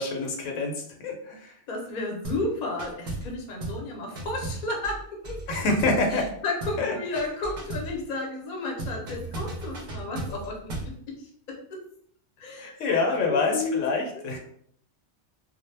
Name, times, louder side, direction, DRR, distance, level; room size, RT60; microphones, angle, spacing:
voice 1, 0.0-1.6 5.5-6.3 6.8-6.9 12.6-14.4, left 3 dB, 80° left, 2 dB, 0.9 m, -26 dB
voice 2, 1.7-5.6 6.1-11.8 12.4-13.8 14.1-14.2, left 2 dB, 50° left, -1 dB, 0.6 m, -33 dB
sound 1, 2.2-2.5 2.8-3.3 3.6-3.9 4.2-6.3 6.6-6.9 7.2-8.0 8.8-11.0, right 2 dB, 55° right, 0.6 m, -35 dB
2.1 x 2.0 x 3.1 m, 0.64 s
omnidirectional pair, 1.3 m